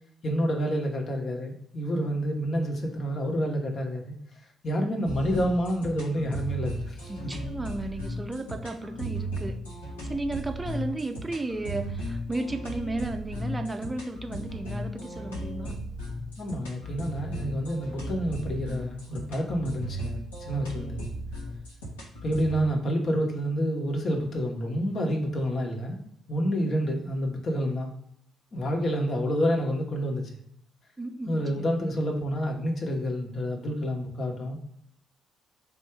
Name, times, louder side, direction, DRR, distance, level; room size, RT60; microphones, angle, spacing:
voice 1, 0.2-4.1 4.6-7.1 16.4-21.0 22.2-26.0 26.3-27.9 28.5-30.2 31.3-34.6, equal, 50° left, 1 dB, 1.0 m, -28 dB
sound 1, 5.1-22.6, right 1 dB, 85° left, 1.0 m, -36 dB
voice 2, 7.1-9.6 10.0-15.8 31.0-32.0, right 2 dB, 20° right, 6 dB, 0.5 m, -34 dB
3.5 x 2.7 x 4.5 m, 0.74 s
hypercardioid pair, 45°, 0 cm